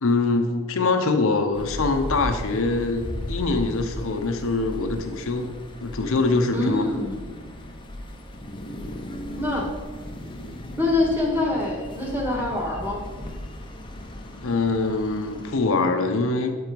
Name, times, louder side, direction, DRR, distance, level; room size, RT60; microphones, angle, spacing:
voice 1, 0.0-5.5 5.8-6.8 14.4-16.5, left 3 dB, 60° left, 6 dB, 0.8 m, -23 dB
sound 1, 1.5-15.5, left 1 dB, 20° left, 0.7 m, -36 dB
voice 2, 6.5-7.2 9.4-9.7 10.8-13.0, left 2 dB, 10° right, -2 dB, 1.5 m, -25 dB
8.4 x 4.6 x 5.1 m, 1.4 s
head